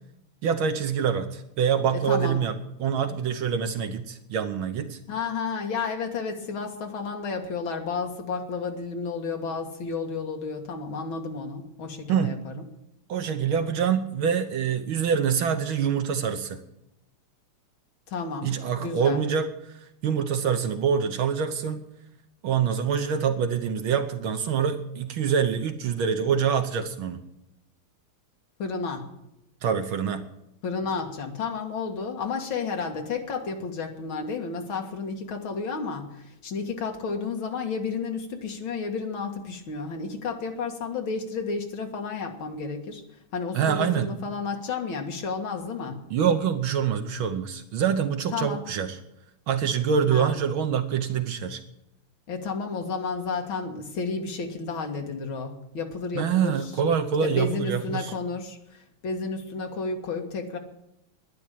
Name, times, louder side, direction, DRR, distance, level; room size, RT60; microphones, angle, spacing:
voice 1, 0.4-5.0 12.1-12.3 13.1-16.6 18.4-19.7 20.0-21.9 22.4-27.2 29.6-30.2 43.5-44.1 46.1-49.0 49.5-51.6 56.1-58.1, right 7 dB, 70° right, 8 dB, 1.7 m, -25 dB
voice 2, 1.9-2.4 5.1-12.6 18.1-18.5 18.8-19.2 28.6-29.1 30.6-43.0 43.3-46.0 48.3-48.6 50.1-50.3 52.3-56.7 57.2-60.6, left 4 dB, 65° left, 3 dB, 2.6 m, -32 dB
11.0 x 10.5 x 9.9 m, 0.86 s
omnidirectional pair, 2.4 m